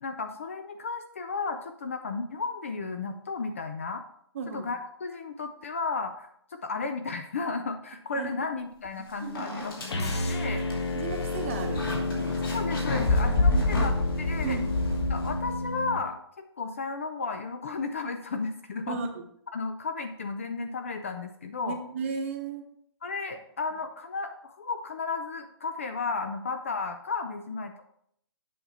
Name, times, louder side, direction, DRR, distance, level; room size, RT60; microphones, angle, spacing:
voice 1, 0.0-4.0 4.5-10.6 12.5-14.6 15.1-19.0 19.5-21.8 23.0-27.8, left 4 dB, 30° left, 7 dB, 0.4 m, -34 dB
voice 2, 4.3-4.7 8.1-8.3 9.2-9.5 9.9-10.1 10.9-12.6 13.2-13.9 14.4-14.8 18.9-19.2 21.6-22.6, right 5 dB, 30° right, 4 dB, 0.9 m, -35 dB
sound 1, 8.8-8.9 9.3-15.7, left 2 dB, 55° left, 2.7 m, -28 dB
sound 2, 9.9-16.0, left 2 dB, 75° left, 1.3 m, -31 dB
8.3 x 5.5 x 4.1 m, 0.70 s
hypercardioid pair, 175°, 14 cm